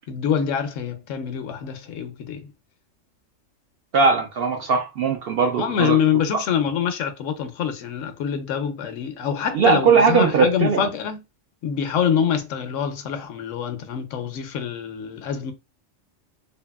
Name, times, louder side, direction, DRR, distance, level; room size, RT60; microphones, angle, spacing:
voice 1, 0.1-2.5 5.6-11.2 11.6-15.5, left 8 dB, 80° left, 1.0 m, -25 dB
voice 2, 3.9-6.0 6.3-6.4 9.5-10.9, right 5 dB, 60° right, 0.6 m, -19 dB
2.7 x 2.6 x 2.2 m
omnidirectional pair, 1.3 m